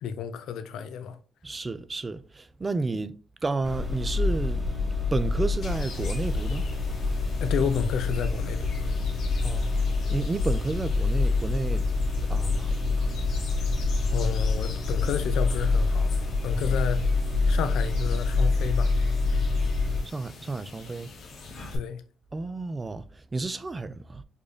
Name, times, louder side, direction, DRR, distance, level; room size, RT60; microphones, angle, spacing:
voice 1, 0.0-1.2 7.4-8.9 14.1-16.2 16.4-17.1 17.5-18.9 19.3-19.4 21.7-22.0, left 7 dB, 80° left, 0.4 m, -31 dB
voice 2, 1.4-4.7 5.1-6.7 9.4-11.9 12.3-13.0 13.4-13.5 20.0-21.1 22.3-24.2, right 3 dB, 25° right, 0.3 m, -32 dB
sound 1, 3.6-20.0, left 3 dB, 5° left, 1.1 m, -26 dB
sound 2, 5.6-21.8, left 4 dB, 65° left, 0.8 m, -44 dB
4.8 x 2.5 x 2.3 m
cardioid pair, 90°, 0 cm